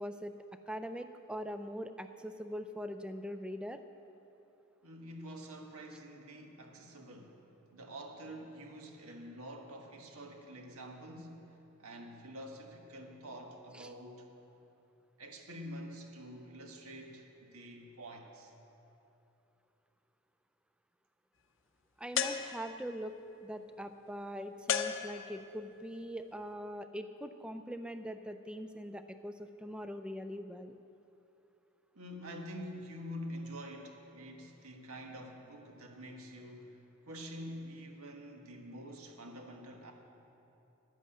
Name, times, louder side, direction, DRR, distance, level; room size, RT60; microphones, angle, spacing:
voice 1, 0.0-3.8 13.7-13.9 22.0-23.2 23.4-30.8, equal, 5° right, 8 dB, 0.3 m, -42 dB
voice 2, 4.8-7.4 7.7-14.3 15.2-18.5 31.9-39.9, equal, 80° right, 2 dB, 1.5 m, -47 dB
sound 1, 22.2-23.0 24.7-25.7, left 7 dB, 55° left, 0.6 m, -35 dB
11.5 x 8.4 x 8.5 m, 2.9 s
head